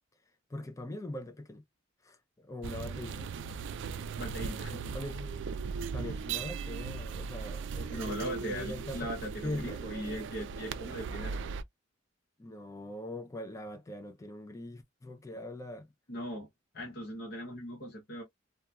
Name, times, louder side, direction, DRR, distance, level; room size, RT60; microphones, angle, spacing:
voice 1, 0.5-1.6 2.0-3.3 4.9-5.3 5.9-9.1 9.4-9.8 12.4-15.9, left 1 dB, 15° left, 0.4 m, -42 dB
sound 1, 2.6-11.6, right 5 dB, 65° right, 0.3 m, -38 dB
voice 2, 4.2-4.8 7.9-11.4 16.1-16.5 16.7-18.2, equal, 55° left, 0.9 m, -39 dB
2.8 x 2.2 x 2.2 m
head